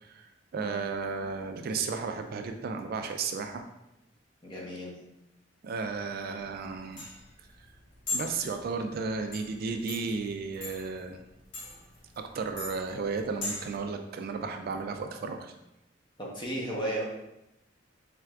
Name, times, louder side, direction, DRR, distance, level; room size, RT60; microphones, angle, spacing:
voice 1, 0.0-3.6 5.6-7.1 8.1-11.2 12.2-15.5, right 4 dB, 55° right, 6 dB, 0.3 m, -34 dB
voice 2, 4.4-4.9 16.2-17.0, right 1 dB, 25° left, -4 dB, 1.0 m, -34 dB
sound 1, 6.4-13.8, left 3 dB, 80° left, 1.2 m, -40 dB
4.5 x 3.3 x 2.4 m, 0.88 s
head